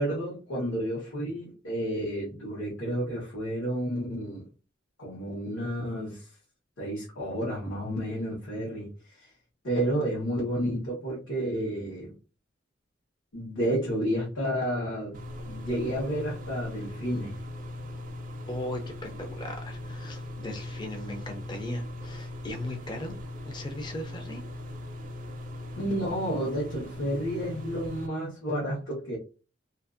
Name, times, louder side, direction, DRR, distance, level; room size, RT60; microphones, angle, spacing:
voice 1, 0.0-4.5 5.0-6.3 6.8-9.3 9.6-12.1 13.3-15.2 15.4-17.4 25.7-29.2, equal, 85° left, 1.1 m, -31 dB
sound 1, 15.1-28.1, left 1 dB, 40° right, 0.4 m, -39 dB
voice 2, 18.4-23.2 23.4-24.4, left 1 dB, 25° left, 0.4 m, -38 dB
2.5 x 2.4 x 2.4 m
head